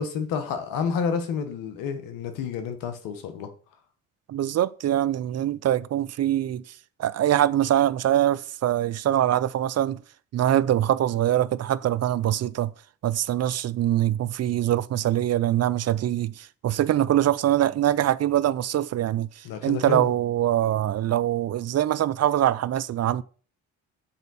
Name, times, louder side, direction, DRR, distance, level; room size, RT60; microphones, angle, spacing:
voice 1, 0.0-3.5 19.4-20.1, left 6 dB, 85° left, 1.3 m, -29 dB
voice 2, 4.3-6.6 7.0-10.0 10.3-12.7 13.0-23.2, right 12 dB, 50° right, 0.5 m, -23 dB
7.2 x 4.5 x 4.2 m
supercardioid pair, 60°, 33 cm